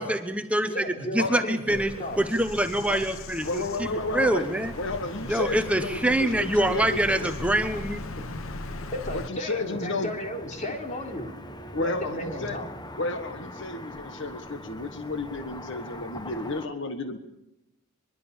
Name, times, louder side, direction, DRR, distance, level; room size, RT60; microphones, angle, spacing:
voice 1, 0.0-1.9 2.2-3.9 4.1-4.7 5.3-8.0, right 1 dB, 5° right, 7 dB, 1.0 m, -25 dB
voice 2, 0.6-2.2 8.2-8.3 8.9-11.3 11.7-12.7, left 1 dB, 35° left, 3 dB, 3.7 m, -34 dB
voice 3, 1.2-1.5 2.9-3.0 3.4-4.5 4.8-7.3 9.1-10.1 11.7-12.6 13.0-17.2, left 2 dB, 65° left, 8 dB, 1.6 m, -32 dB
Bird vocalization bird call bird song, 1.7-9.3, left 2 dB, 85° left, 1.0 m, -39 dB
Car passing by / Traffic noise roadway noise, 3.4-16.7, left 1 dB, 20° left, 1.3 m, -43 dB
23.0 x 22.5 x 7.2 m, 0.89 s
head